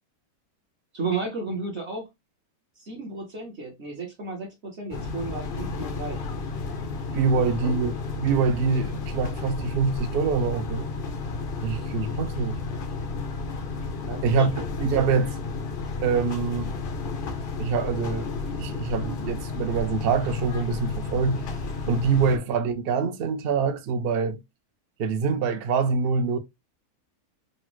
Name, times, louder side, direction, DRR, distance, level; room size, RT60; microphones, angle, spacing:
voice 1, 0.9-2.1 2.8-6.2 7.3-7.7 14.1-14.2 14.6-14.7 22.3-22.4, right 3 dB, 55° right, 1.0 m, -33 dB
sound 1, 4.9-22.4, left 3 dB, 75° left, 0.5 m, -32 dB
voice 2, 7.1-10.9 11.6-12.6 14.2-15.4 16.0-16.8 17.6-21.4 21.9-24.4 25.0-26.4, right 5 dB, 70° right, 0.5 m, -25 dB
3.9 x 2.0 x 2.9 m
omnidirectional pair, 1.6 m